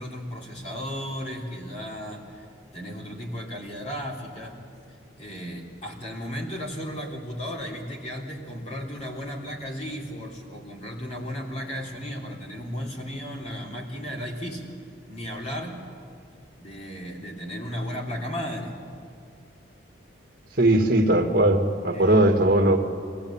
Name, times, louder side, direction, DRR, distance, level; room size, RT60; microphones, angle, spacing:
voice 1, 0.0-2.5 2.7-4.6 5.2-14.7 15.1-15.8 16.6-18.8 21.9-22.2, equal, 35° left, -2 dB, 3.4 m, -35 dB
voice 2, 20.6-22.8, right 1 dB, 50° right, 4 dB, 1.9 m, -19 dB
25.5 x 16.0 x 8.8 m, 2.4 s
head